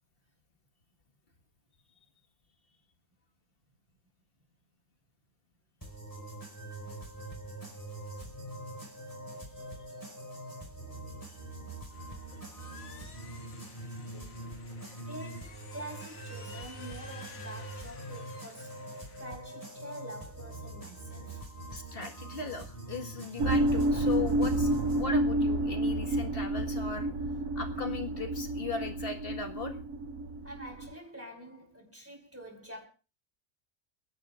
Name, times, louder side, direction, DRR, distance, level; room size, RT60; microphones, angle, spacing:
sound 1, 5.8-25.0, right 1 dB, 15° left, 5.0 m, -43 dB
sound 2, 11.9-19.3, left 5 dB, 85° left, 2.0 m, -52 dB
voice 1, 15.0-18.9 19.1-21.4 30.4-32.9, right 1 dB, 10° right, 5.3 m, -46 dB
voice 2, 21.7-27.1 27.6-29.7, left 4 dB, 45° left, 1.8 m, -37 dB
sound 3, 23.4-30.9, right 1 dB, 85° right, 1.3 m, -30 dB
29.5 x 10.5 x 2.5 m
omnidirectional pair, 1.4 m